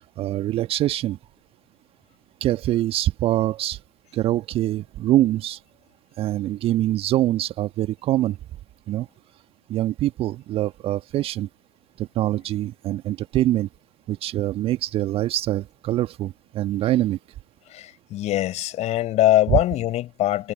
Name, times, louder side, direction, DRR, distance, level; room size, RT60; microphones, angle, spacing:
voice 1, 0.2-1.2 2.4-3.8 4.1-5.6 6.2-8.4 8.9-9.1 9.7-11.5 12.0-13.7 14.1-17.2 19.5-19.6, right 14 dB, 20° right, 1.3 m, -24 dB
voice 2, 17.7-20.5, left 14 dB, 25° left, 6.2 m, -22 dB
figure-of-eight pair, 115°, 29 cm